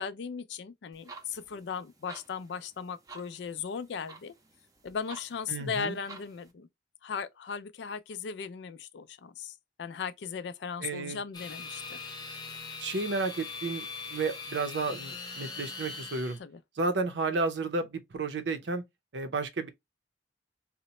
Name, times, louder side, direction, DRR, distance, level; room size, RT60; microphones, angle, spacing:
voice 1, 0.0-4.3 4.8-6.7 7.0-12.0 16.4-16.6, left 6 dB, 70° left, 0.4 m, -37 dB
sound 1, 0.9-6.5, right 4 dB, 20° right, 0.6 m, -52 dB
voice 2, 5.5-6.0 10.8-11.2 12.8-16.4 16.8-18.8 19.1-19.7, right 3 dB, 70° right, 0.6 m, -32 dB
sound 2, 11.3-16.4, left 4 dB, 25° left, 0.6 m, -41 dB
2.8 x 2.1 x 4.1 m
head